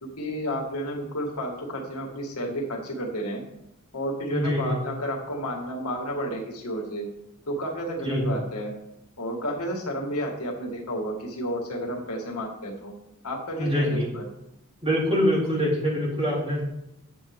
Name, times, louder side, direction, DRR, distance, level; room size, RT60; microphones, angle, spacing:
voice 1, 0.0-3.4 3.9-7.1 7.5-8.7 9.2-12.9 13.2-14.2, equal, 80° left, -1 dB, 2.0 m, -31 dB
voice 2, 4.3-4.7 8.0-8.2 13.6-14.1 14.8-16.6, equal, 25° right, -5 dB, 3.3 m, -24 dB
9.4 x 7.3 x 3.7 m, 0.85 s
head